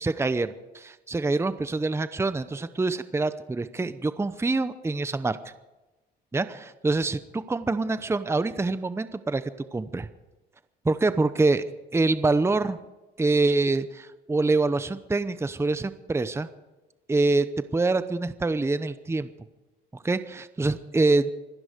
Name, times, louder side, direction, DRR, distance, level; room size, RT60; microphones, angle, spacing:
voice 1, 0.0-5.4 6.3-9.4 9.7-10.1 10.8-11.6 11.9-12.8 13.2-16.5 17.1-17.5 17.7-19.3 20.0-21.3, right 3 dB, 10° right, 13 dB, 0.7 m, -25 dB
25.5 x 11.0 x 5.2 m, 1.1 s
cardioid pair, 90°, 21 cm